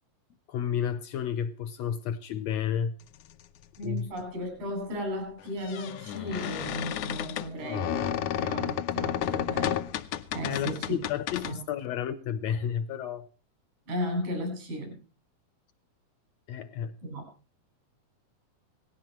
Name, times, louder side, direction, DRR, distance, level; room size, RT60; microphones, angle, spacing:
voice 1, 0.5-2.9 3.8-4.1 10.4-13.3 16.5-16.9, left 8 dB, 75° left, 1.6 m, -31 dB
sound 1, 3.7-3.8 5.4-11.5, left 11 dB, 90° left, 1.3 m, -32 dB
voice 2, 3.8-9.8 10.3-11.0 11.4-11.6 13.9-15.0 17.0-17.2, equal, 75° right, 7.6 m, -35 dB
18.0 x 16.5 x 3.1 m
omnidirectional pair, 3.9 m